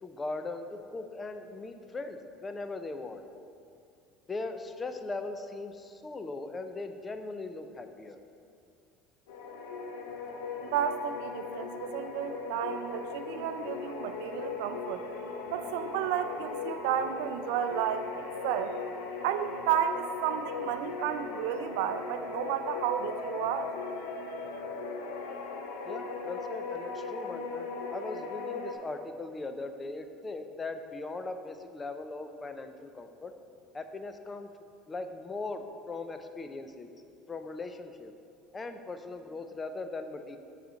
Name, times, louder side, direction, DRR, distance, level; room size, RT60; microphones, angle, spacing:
voice 1, 0.0-3.2 4.3-8.2 25.8-33.3 33.7-34.5 34.9-36.9 37.3-38.1 38.5-40.4, left 3 dB, 25° left, 8 dB, 0.6 m, -39 dB
sound 1, 9.3-28.7, left 4 dB, 85° left, 0.7 m, -39 dB
voice 2, 10.6-15.1 15.5-18.8 19.2-23.7, right 9 dB, 80° right, 9 dB, 0.4 m, -32 dB
6.8 x 4.1 x 6.3 m, 2.5 s
supercardioid pair, 95°, 0 cm